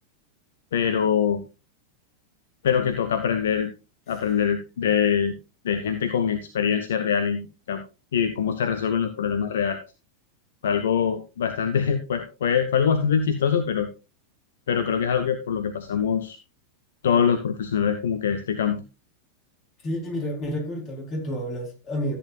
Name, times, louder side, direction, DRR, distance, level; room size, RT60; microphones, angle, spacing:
voice 1, 0.7-1.4 2.6-3.7 4.1-5.3 5.6-7.8 8.1-9.8 10.6-13.9 14.7-16.4 17.0-18.8, left 7 dB, 60° left, 8 dB, 0.9 m, -24 dB
voice 2, 19.8-22.2, equal, 30° left, 1 dB, 3.9 m, -30 dB
14.0 x 8.7 x 2.5 m, 0.29 s
figure-of-eight pair, 90°, 0 cm